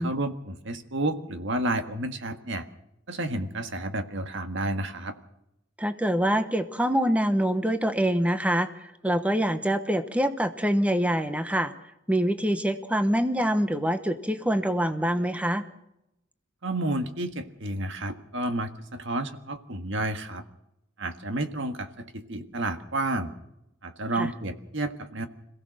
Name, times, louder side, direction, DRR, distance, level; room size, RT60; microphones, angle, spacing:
voice 1, 0.0-2.6 3.1-5.1 16.6-20.4 21.0-23.3 23.8-25.3, right 2 dB, 65° right, 7 dB, 1.7 m, -31 dB
voice 2, 5.8-11.7 12.1-15.6 24.2-24.3, equal, 5° right, 9 dB, 0.9 m, -25 dB
26.5 x 16.0 x 6.4 m, 0.85 s
head